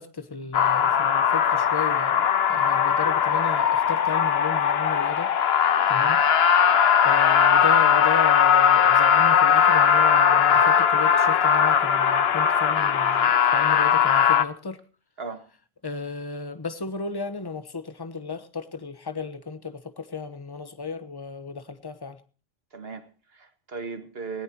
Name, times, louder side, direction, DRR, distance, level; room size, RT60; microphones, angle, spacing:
voice 1, 0.0-5.3 5.9-6.2 7.0-14.8 15.8-22.2, left 4 dB, 25° left, 1.2 m, -34 dB
sound 1, 0.5-14.4, left 8 dB, 80° left, 1.1 m, -19 dB
voice 2, 22.7-24.4, right 4 dB, 75° right, 1.9 m, -37 dB
19.0 x 17.5 x 2.9 m
omnidirectional pair, 1.0 m